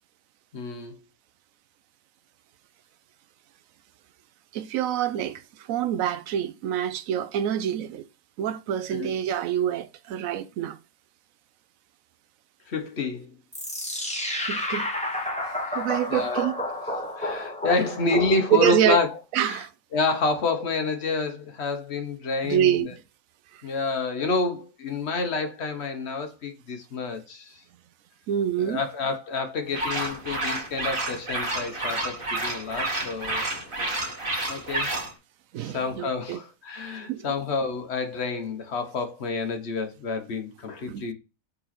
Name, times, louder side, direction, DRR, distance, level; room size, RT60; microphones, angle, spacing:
voice 1, 0.5-1.0 8.9-9.1 12.7-13.3 16.1-16.4 17.2-19.6 19.9-22.9 23.6-27.6 28.6-33.5 34.0-34.2 34.5-35.0 35.6-41.1, left 3 dB, 50° left, 1.2 m, -28 dB
voice 2, 4.5-5.4 5.7-8.0 8.4-10.8 14.4-14.9 15.7-16.5 17.0-17.1 18.5-19.0 19.3-19.7 22.4-22.9 28.3-28.8 35.5-36.4 37.1-37.3 40.9-41.0, right 10 dB, 75° right, 1.0 m, -26 dB
sound 1, 13.5-18.8, left 1 dB, 5° left, 1.4 m, -31 dB
sound 2, 29.7-35.1, right 2 dB, 40° right, 2.0 m, -30 dB
5.4 x 4.2 x 4.1 m
omnidirectional pair, 1.5 m